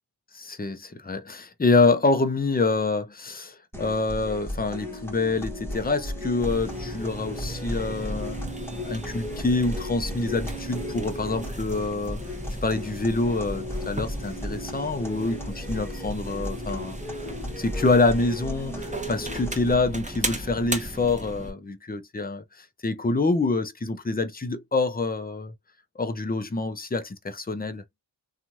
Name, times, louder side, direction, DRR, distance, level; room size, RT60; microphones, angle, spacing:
voice 1, 0.4-8.4 8.8-12.2 12.6-17.0 17.6-25.5 26.0-27.8, left 3 dB, 20° left, 0.5 m, -26 dB
sound 1, 3.7-19.7, equal, 5° left, 1.1 m, -35 dB
sound 2, 6.4-21.5, right 1 dB, 15° right, 0.9 m, -37 dB
3.0 x 2.4 x 2.6 m
wide cardioid pair, 45°, 43 cm